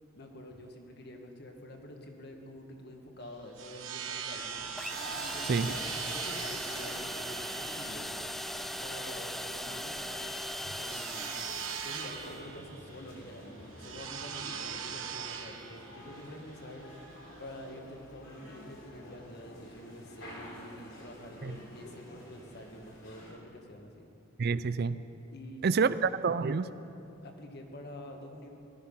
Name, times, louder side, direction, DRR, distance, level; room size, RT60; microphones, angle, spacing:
voice 1, 0.1-4.6 5.1-8.1 8.8-10.0 10.8-11.3 11.8-16.8 17.4-24.1 25.3-26.0 27.2-28.5, left 1 dB, 55° left, 3 dB, 1.7 m, -47 dB
sound 1, 3.2-17.8, right 7 dB, 75° right, 1.2 m, -41 dB
sound 2, 4.3-23.3, equal, 75° left, 4.1 m, -50 dB
sound 3, 4.8-12.4, equal, ahead, 0.4 m, -39 dB
voice 2, 24.4-25.0 25.6-26.7, right 5 dB, 50° right, 15 dB, 0.5 m, -28 dB
18.0 x 13.5 x 5.5 m, 2.7 s
head